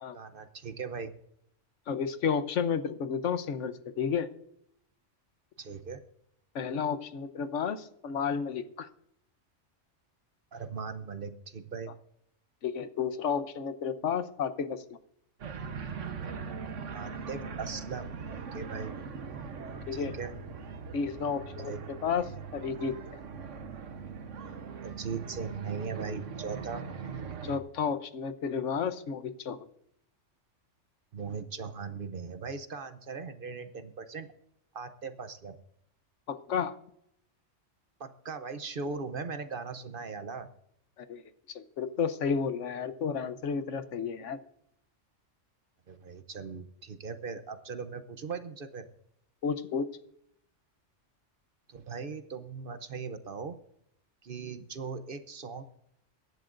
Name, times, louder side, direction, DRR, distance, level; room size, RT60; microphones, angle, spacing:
voice 1, 0.1-1.1 5.6-6.0 10.5-11.9 16.9-18.1 18.5-18.9 19.9-20.3 21.6-21.8 24.8-26.8 31.1-34.3 34.7-35.6 38.0-40.5 45.9-48.9 51.7-53.6 54.2-55.6, right 5 dB, 50° right, 10 dB, 0.9 m, -39 dB
voice 2, 1.9-4.3 6.5-8.9 12.6-15.0 19.9-20.1 20.9-21.7 22.0-22.2 22.5-23.2 27.4-29.6 36.3-36.7 41.0-41.2 41.5-44.4 49.4-49.9, left 6 dB, 75° left, 11 dB, 1.2 m, -32 dB
sound 1, 15.4-27.6, right 5 dB, 80° right, 1.4 m, -41 dB
23.0 x 11.0 x 2.6 m, 0.72 s
omnidirectional pair, 1.3 m